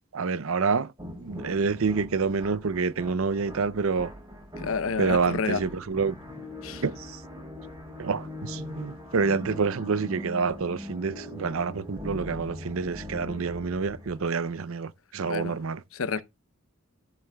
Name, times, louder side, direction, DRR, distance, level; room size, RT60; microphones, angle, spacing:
voice 1, 0.1-4.1 5.0-6.1 6.7-7.2 8.0-15.8, right 5 dB, 70° right, 0.5 m, -28 dB
sound 1, 1.0-14.6, left 1 dB, 20° right, 3.5 m, -41 dB
voice 2, 4.6-5.6 6.6-6.8 15.3-15.6 15.9-16.2, left 5 dB, 70° left, 0.7 m, -29 dB
14.0 x 7.3 x 2.3 m
head